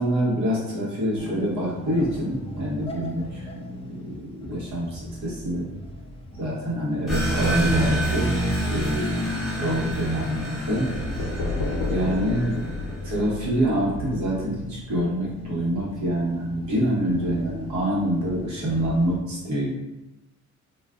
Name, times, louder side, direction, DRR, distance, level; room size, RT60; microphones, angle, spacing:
voice 1, 0.0-3.5 3.8-5.7 6.4-8.4 8.7-10.9 11.9-12.6 13.1-19.7, equal, 65° right, -5 dB, 1.1 m, -26 dB
sound 1, 1.2-19.2, equal, 20° left, 0.3 m, -40 dB
sound 2, 7.1-13.3, equal, ahead, 0.8 m, -28 dB
sound 3, 10.9-14.7, left 3 dB, 85° left, 0.5 m, -30 dB
2.4 x 2.4 x 2.2 m, 0.98 s
cardioid pair, 90°, 30 cm